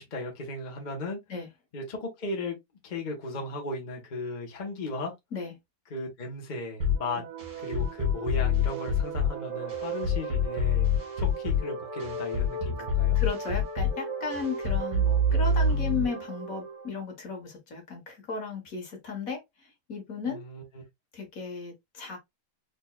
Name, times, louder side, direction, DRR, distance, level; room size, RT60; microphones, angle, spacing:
voice 1, 0.0-1.2 1.7-2.6 2.8-5.1 5.9-7.2 7.6-10.9 11.2-13.2 20.3-20.8, left 2 dB, 35° left, 0.9 m, -36 dB
sound 1, 6.8-16.9, left 3 dB, 60° right, 2.1 m, -27 dB
voice 2, 13.1-19.4 19.9-20.4 21.1-22.2, left 4 dB, 55° left, 1.6 m, -35 dB
4.1 x 3.4 x 2.2 m
omnidirectional pair, 1.8 m